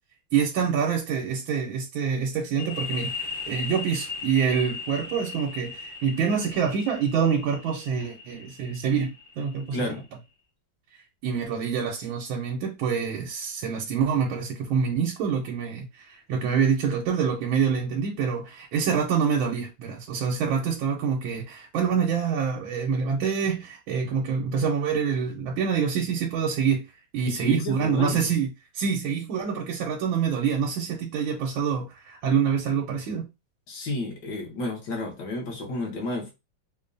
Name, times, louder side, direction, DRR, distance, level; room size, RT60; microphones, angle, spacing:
voice 1, 0.3-3.1 3.5-9.8 11.2-26.9 27.1-28.5 28.7-33.3, right 6 dB, 85° right, 1.5 m, -26 dB
sound 1, 2.6-10.0, left 5 dB, 40° left, 0.9 m, -38 dB
voice 2, 9.7-10.0 27.3-28.4 33.7-36.3, left 2 dB, 60° left, 1.6 m, -31 dB
5.1 x 2.2 x 2.6 m
omnidirectional pair, 2.2 m